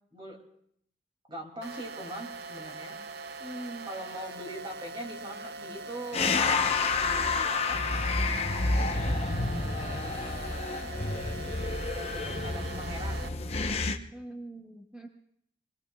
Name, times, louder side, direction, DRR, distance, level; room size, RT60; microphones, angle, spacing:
voice 1, 1.3-3.0 3.8-6.3 7.0-7.8 9.1-10.6 11.9-13.2, right 1 dB, 25° right, 1 dB, 2.5 m, -42 dB
sound 1, 1.6-13.3, right 3 dB, 60° right, 0.5 m, -42 dB
voice 2, 3.4-4.0 14.1-15.1, right 1 dB, 5° right, 1 dB, 0.8 m, -42 dB
sound 2, 6.1-14.0, left 3 dB, 35° left, 0.8 m, -29 dB
26.0 x 20.0 x 2.3 m, 0.71 s
head